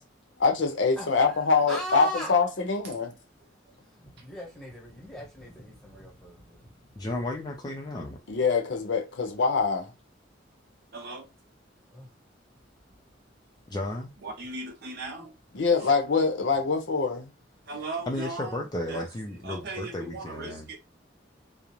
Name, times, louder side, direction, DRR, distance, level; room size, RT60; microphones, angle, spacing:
voice 1, 0.4-3.1 8.3-9.9 15.5-17.3, left 4 dB, 70° left, 0.6 m, -24 dB
voice 2, 1.0-2.3 3.8-6.7 11.9-12.1, equal, 5° left, 1.0 m, -39 dB
voice 3, 7.0-8.2 13.7-14.1 18.1-20.7, left 1 dB, 20° left, 0.4 m, -34 dB
voice 4, 10.9-11.3 14.2-15.3 17.7-18.6 18.9-19.1 19.4-20.8, right 3 dB, 60° right, 0.7 m, -37 dB
2.4 x 2.0 x 3.0 m
head